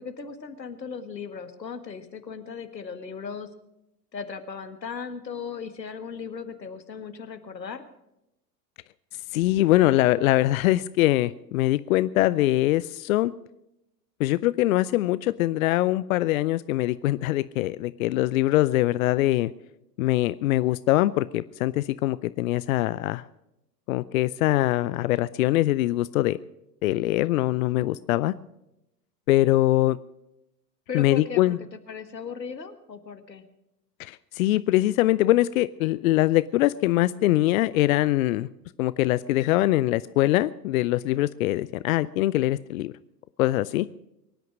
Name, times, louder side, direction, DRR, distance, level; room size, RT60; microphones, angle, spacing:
voice 1, 0.0-3.5 4.1-7.8 30.9-31.5 31.9-33.4, left 6 dB, 90° left, 9 dB, 1.6 m, -37 dB
voice 2, 9.3-13.3 14.2-19.5 20.0-23.2 23.9-26.4 26.8-28.3 29.3-30.0 30.9-31.6 34.0-38.5 38.8-42.9 43.4-43.9, left 16 dB, 60° left, 17 dB, 0.6 m, -23 dB
23.0 x 9.3 x 6.1 m, 0.87 s
hypercardioid pair, 95°, 49 cm